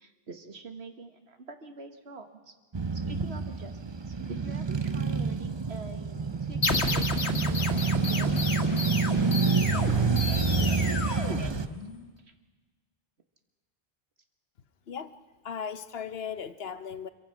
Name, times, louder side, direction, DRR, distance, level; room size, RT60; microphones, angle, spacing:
voice 1, 0.0-2.5 2.9-3.8 4.1-6.6 6.9-11.2 11.7-11.8 12.2-12.3, right 4 dB, 90° right, 6 dB, 1.9 m, -45 dB
Male speech man speaking / Motorcycle / Idling, 2.7-11.7, right 4 dB, 30° right, 0.7 m, -28 dB
sound 1, 6.6-12.1, left 3 dB, 85° left, 1.9 m, -32 dB
voice 2, 15.4-17.1, left 7 dB, 70° left, 12 dB, 1.1 m, -37 dB
26.0 x 23.0 x 5.9 m, 1.3 s
omnidirectional pair, 1.1 m